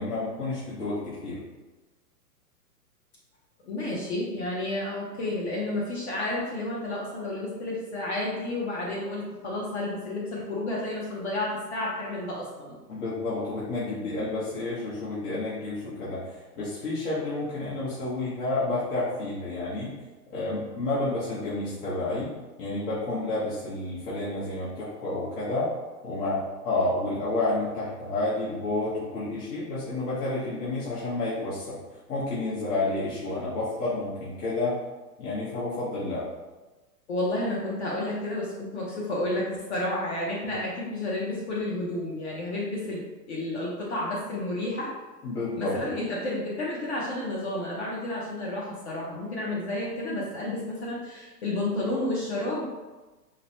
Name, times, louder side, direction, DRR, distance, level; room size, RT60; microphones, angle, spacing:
voice 1, 0.0-1.4 12.9-19.9 20.3-22.3 22.6-25.7 26.0-31.8 32.1-34.8 35.2-36.2 45.2-45.9, left 2 dB, 70° left, -10 dB, 1.4 m, -30 dB
voice 2, 3.6-12.8 37.1-43.0 43.3-44.9 45.6-52.6, left 1 dB, 40° left, -4 dB, 0.8 m, -31 dB
4.8 x 2.2 x 2.9 m, 1.2 s
hypercardioid pair, 155°, 49 cm